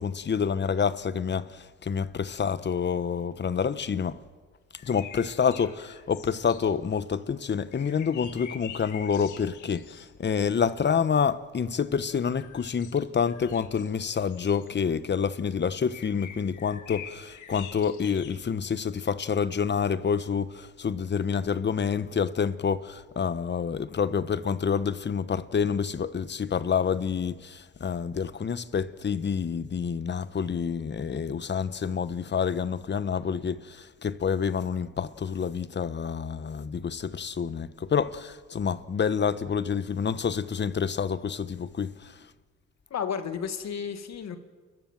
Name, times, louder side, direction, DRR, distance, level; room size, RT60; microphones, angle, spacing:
voice 1, 0.0-4.2 4.8-42.2, left 6 dB, 35° left, 1.0 m, -28 dB
sound 1, 4.8-7.2 7.7-10.7 12.1-14.7 15.9-18.4 18.8-18.9, left 9 dB, 80° left, 2.2 m, -46 dB
voice 2, 42.9-44.4, left 7 dB, 60° left, 2.1 m, -32 dB
30.0 x 14.0 x 7.4 m
cardioid pair, 90°, 30 cm